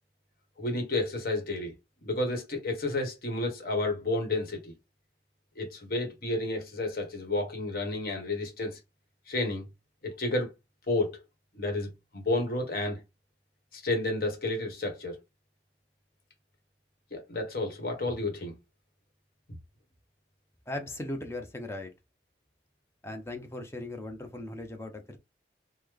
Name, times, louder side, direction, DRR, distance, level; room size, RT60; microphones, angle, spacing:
voice 1, 0.6-1.7 2.0-4.7 5.5-8.8 9.3-9.7 10.0-10.5 10.9-11.2 11.5-13.0 13.7-15.2 17.1-18.6, left 2 dB, 55° left, 1.1 m, -31 dB
voice 2, 20.7-21.9 23.0-25.2, left 1 dB, 15° left, 0.5 m, -38 dB
3.1 x 2.1 x 3.5 m
head